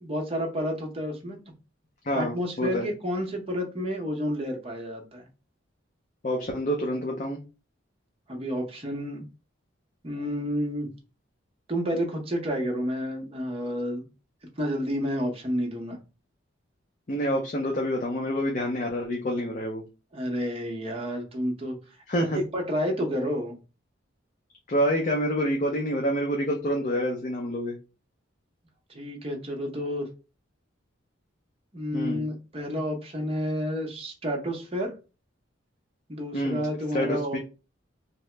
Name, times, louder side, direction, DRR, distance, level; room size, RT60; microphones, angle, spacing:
voice 1, 0.0-1.4 2.1-5.2 8.3-9.2 10.0-10.9 11.7-14.0 14.6-16.0 20.1-21.8 22.2-23.6 28.9-30.1 31.7-34.9 36.1-37.4, equal, 30° right, 1 dB, 0.7 m, -30 dB
voice 2, 2.0-2.9 6.2-7.4 17.1-19.8 22.1-22.4 24.7-27.7 31.9-32.2 36.3-36.6 36.9-37.4, equal, 40° left, 0 dB, 0.4 m, -27 dB
2.8 x 2.1 x 3.2 m, 0.31 s
head